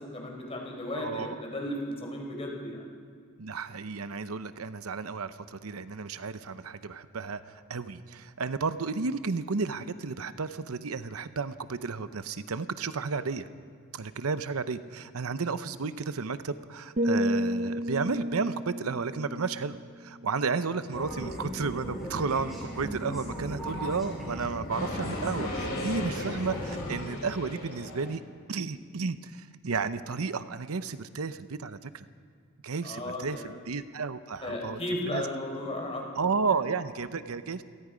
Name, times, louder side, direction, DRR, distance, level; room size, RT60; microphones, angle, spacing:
voice 1, 0.0-2.8 32.8-33.5 34.4-36.1, left 1 dB, 30° left, 1 dB, 4.3 m, -35 dB
voice 2, 0.9-1.4 3.4-13.5 13.9-28.2 28.5-32.1 32.6-35.2 36.2-37.6, right 4 dB, 85° right, 12 dB, 0.8 m, -32 dB
sound 1, 17.0-20.9 21.3-21.6, equal, 35° right, 0.7 m, -32 dB
sound 2, 20.9-27.0, equal, ahead, 7.5 m, -37 dB
sound 3, 24.7-28.1, left 2 dB, 75° left, 7.0 m, -36 dB
28.5 x 18.0 x 5.1 m, 2.1 s
head